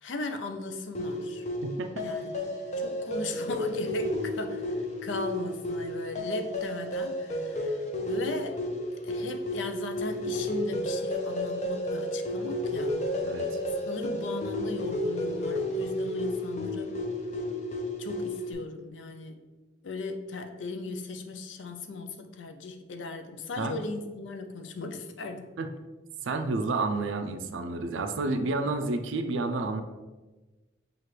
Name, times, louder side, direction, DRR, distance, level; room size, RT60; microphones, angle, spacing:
voice 1, 0.0-1.5 2.0-2.5 2.8-8.6 9.0-13.0 13.9-17.0 18.0-19.4 19.8-25.5, left 2 dB, 80° left, 6 dB, 0.5 m, -37 dB
sound 1, 0.9-18.5, left 1 dB, 35° left, 0.5 m, -32 dB
voice 2, 1.6-2.1 13.2-13.6 23.6-23.8 25.6-25.7 26.2-29.8, right 3 dB, 85° right, 7 dB, 0.4 m, -30 dB
5.8 x 2.5 x 3.2 m, 1.2 s
head